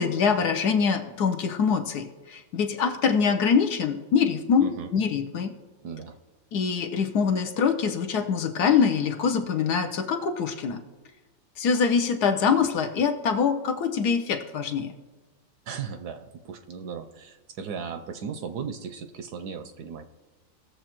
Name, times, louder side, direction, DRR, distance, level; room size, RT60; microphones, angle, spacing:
voice 1, 0.0-5.6 6.5-10.8 11.6-14.9, left 6 dB, 65° left, 6 dB, 1.1 m, -24 dB
voice 2, 5.8-6.2 12.5-12.6 15.7-20.1, right 6 dB, 70° right, 8 dB, 1.0 m, -36 dB
18.5 x 6.9 x 3.0 m, 1.2 s
omnidirectional pair, 2.0 m